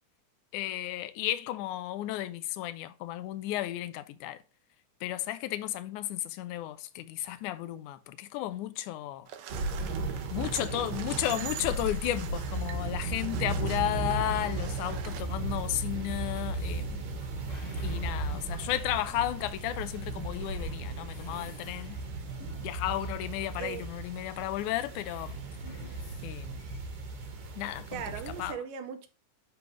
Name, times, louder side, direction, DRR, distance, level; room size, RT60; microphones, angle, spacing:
voice 1, 0.5-4.4 5.0-9.3 10.3-17.1 17.8-22.0 22.6-25.4 26.2-26.6 27.6-28.0 28.4-28.6, left 14 dB, 80° left, 2.0 m, -33 dB
sound 1, 9.3-15.2, right 10 dB, 75° right, 2.1 m, -45 dB
sound 2, 9.5-28.5, right 2 dB, 55° right, 2.2 m, -36 dB
sound 3, 14.0-27.6, left 3 dB, 60° left, 4.3 m, -55 dB
voice 2, 23.6-23.9 27.9-29.1, right 8 dB, 90° right, 2.5 m, -38 dB
10.5 x 3.8 x 3.1 m
omnidirectional pair, 3.7 m